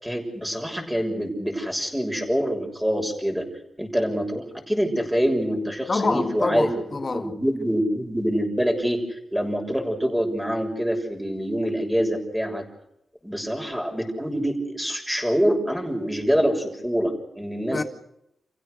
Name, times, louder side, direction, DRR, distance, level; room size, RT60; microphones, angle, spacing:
voice 1, 0.0-3.5 3.8-6.7 7.1-9.0 9.3-12.6 13.2-17.9, equal, 5° right, 6.9 m, -25 dB
voice 2, 5.9-7.3 17.7-17.8, left 3 dB, 35° left, 2.1 m, -26 dB
30.0 x 16.0 x 6.6 m
cardioid pair, 95°, 0 cm